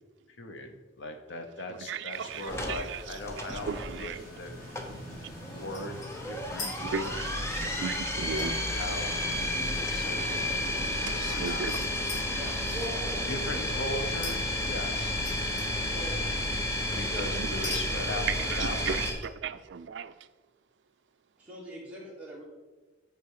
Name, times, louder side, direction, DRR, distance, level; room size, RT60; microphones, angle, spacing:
voice 1, 0.4-4.5 5.5-7.2 8.4-11.6 13.3-15.1 16.9-19.0, left 1 dB, 70° left, 0.9 m, -39 dB
voice 2, 1.7-4.2 4.6-5.2 6.8-8.6 9.8-9.9 10.2-10.4 10.8-12.2 15.4-15.5 16.9-17.0 17.4-17.8 18.3-20.1, right 6 dB, 65° right, 0.4 m, -37 dB
sound 1, 2.1-10.6, equal, 45° left, 2.3 m, -47 dB
sound 2, 2.5-19.1, left 1 dB, 15° left, 0.7 m, -32 dB
sound 3, 5.7-6.7 7.0-12.9 14.2-15.9 16.2-16.3 17.6-17.8 18.1-19.7, left 3 dB, 85° left, 2.2 m, -42 dB
voice 3, 12.3-13.8 15.9-16.1 16.9-17.4 17.7-18.6 19.1-19.2 21.4-22.4, equal, 5° right, 2.1 m, -42 dB
8.5 x 4.5 x 4.8 m
head